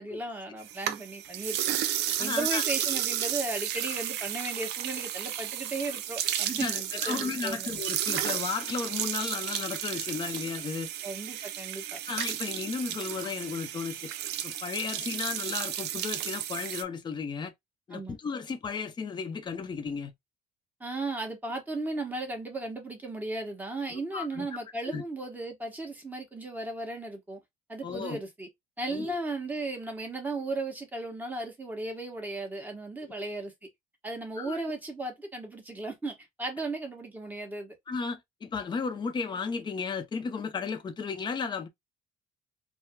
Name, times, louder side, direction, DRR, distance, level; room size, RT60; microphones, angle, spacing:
voice 1, 0.0-1.6 2.2-7.7 11.0-12.0 17.9-18.2 20.8-27.4 27.7-28.5 28.8-33.5 34.0-37.7, right 2 dB, 10° right, 1.1 m, -36 dB
sound 1, 0.6-16.8, right 11 dB, 80° right, 0.4 m, -33 dB
voice 2, 2.2-2.6 6.5-10.9 12.1-14.1 14.4-17.5 17.9-20.1 23.9-24.5 24.8-25.0 27.8-28.2 28.9-29.2 34.4-34.6 37.9-41.7, left 5 dB, 25° left, 0.6 m, -34 dB
4.3 x 2.0 x 2.2 m
cardioid pair, 110°, 17 cm